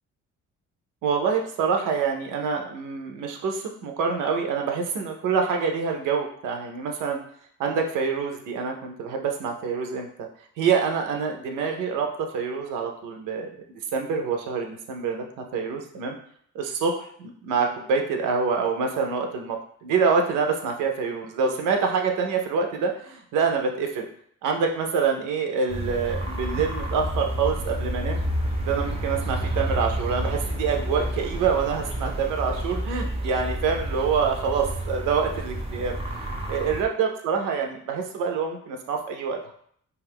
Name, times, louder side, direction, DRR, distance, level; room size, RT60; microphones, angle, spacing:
voice 1, 1.0-7.2 7.6-10.3 10.6-16.1 16.5-16.9 17.2-24.1 24.4-28.2 28.6-35.9 36.5-39.5, right 5 dB, 90° right, 3 dB, 0.6 m, -26 dB
sound 1, 25.7-36.8, right 1 dB, 20° right, 0.4 m, -30 dB
2.4 x 2.3 x 3.4 m, 0.64 s
cardioid pair, 90°, 30 cm